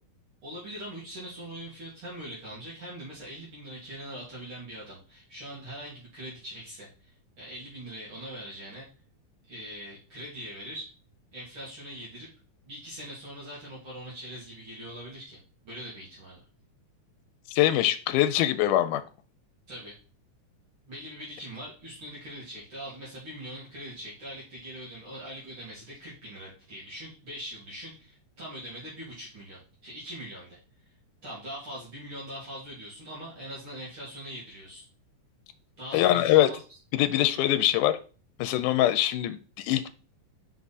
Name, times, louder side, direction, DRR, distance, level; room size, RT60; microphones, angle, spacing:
voice 1, 0.4-8.9 9.5-10.9 11.3-12.3 12.6-15.4 15.6-16.4 19.7-20.0 20.9-30.6 31.2-34.8 35.8-36.6, equal, 45° right, -7 dB, 2.7 m, -42 dB
voice 2, 17.5-19.0 35.9-36.5 37.0-38.0 38.4-39.4 39.6-39.9, left 13 dB, 85° left, 11 dB, 2.1 m, -23 dB
5.7 x 4.7 x 4.1 m, 0.36 s
omnidirectional pair, 3.6 m